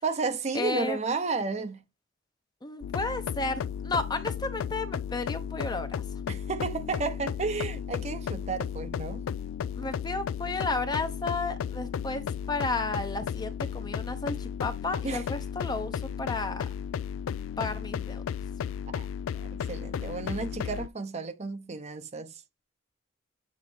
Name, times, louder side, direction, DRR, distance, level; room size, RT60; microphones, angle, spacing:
voice 1, 0.0-1.8 6.3-9.2 15.0-15.2 18.9-19.1 19.3-22.4, right 4 dB, 35° right, 0.6 m, -32 dB
voice 2, 0.5-1.0 2.6-6.0 9.8-16.7 17.6-18.2, left 3 dB, 20° left, 0.7 m, -33 dB
sound 1, 2.8-20.9, left 8 dB, 80° left, 0.3 m, -34 dB
8.2 x 3.2 x 4.3 m
head